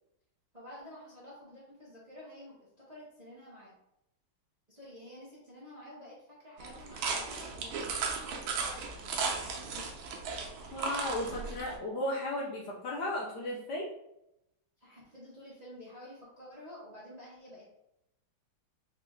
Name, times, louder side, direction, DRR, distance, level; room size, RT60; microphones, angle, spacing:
voice 1, 0.5-3.8 4.7-9.9 14.8-17.6, left 1 dB, 30° right, -8 dB, 0.8 m, -50 dB
sound 1, 6.6-11.8, right 4 dB, 85° right, 1.4 m, -36 dB
voice 2, 10.7-13.9, left 1 dB, 65° left, -2 dB, 1.1 m, -35 dB
4.3 x 2.5 x 3.5 m, 0.83 s
omnidirectional pair, 2.2 m